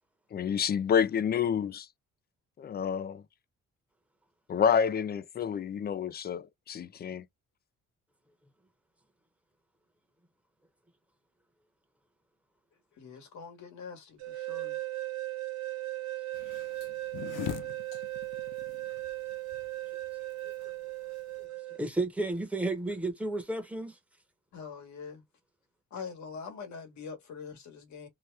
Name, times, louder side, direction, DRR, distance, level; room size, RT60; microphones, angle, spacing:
voice 1, 0.3-1.9 2.6-3.2 4.5-7.2, left 7 dB, 35° left, 0.4 m, -28 dB
voice 2, 12.9-14.8 24.5-25.2 25.9-28.1, left 5 dB, 70° left, 1.2 m, -44 dB
sound 1, 14.2-21.8, right 18 dB, 65° right, 0.9 m, -37 dB
sound 2, 16.3-21.5, left 13 dB, 85° left, 0.5 m, -42 dB
voice 3, 21.8-24.0, right 2 dB, 5° right, 1.0 m, -32 dB
2.9 x 2.1 x 3.2 m
cardioid pair, 90°, 30 cm